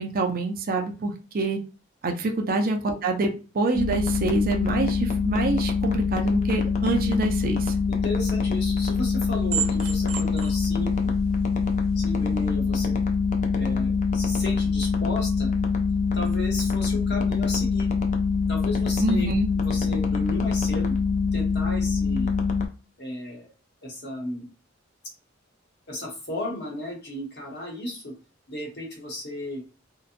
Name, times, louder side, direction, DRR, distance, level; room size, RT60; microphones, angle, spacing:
voice 1, 0.0-1.6 2.0-7.7 19.0-19.5, right 3 dB, 45° right, 2 dB, 0.5 m, -26 dB
sound 1, 3.7-22.7, left 5 dB, 40° left, 0.4 m, -24 dB
voice 2, 7.9-11.1 11.9-12.9 13.5-15.5 16.1-17.9 18.5-19.3 19.5-21.0 21.3-22.3 23.0-23.5 23.8-24.5 25.9-28.1 28.5-29.6, left 1 dB, 55° left, 0 dB, 1.0 m, -34 dB
sound 2, 8.2-12.5, right 8 dB, 90° right, 0.6 m, -36 dB
2.8 x 2.2 x 2.4 m, 0.34 s
head